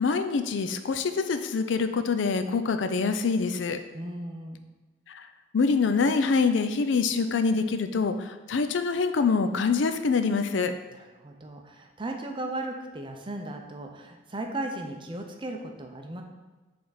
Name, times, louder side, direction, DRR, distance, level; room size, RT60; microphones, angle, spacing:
voice 1, 0.0-3.8 5.1-5.3 5.5-10.7, left 4 dB, 70° left, 9 dB, 0.4 m, -25 dB
voice 2, 3.9-4.6 10.9-16.2, right 1 dB, 25° right, 3 dB, 0.6 m, -36 dB
7.7 x 3.5 x 4.0 m, 1.2 s
head